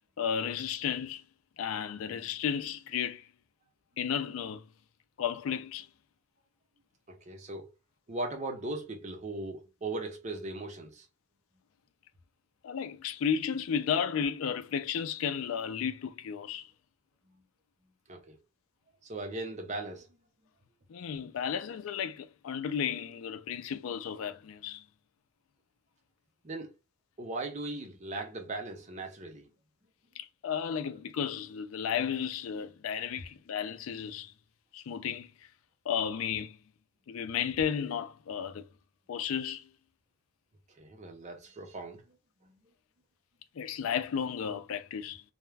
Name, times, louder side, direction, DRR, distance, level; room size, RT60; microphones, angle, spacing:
voice 1, 0.2-1.2 1.6-3.3 4.0-4.6 5.2-5.9 12.6-16.7 20.9-24.8 30.2-34.3 34.7-35.3 35.9-36.6 37.1-38.6 39.1-39.7 43.6-45.2, left 7 dB, 75° left, 0.3 m, -33 dB
voice 2, 7.1-7.7 8.1-11.0 18.1-18.4 19.0-20.1 26.4-26.7 27.2-29.5 40.8-42.0, right 2 dB, 35° right, 0.6 m, -38 dB
2.3 x 2.1 x 3.2 m
head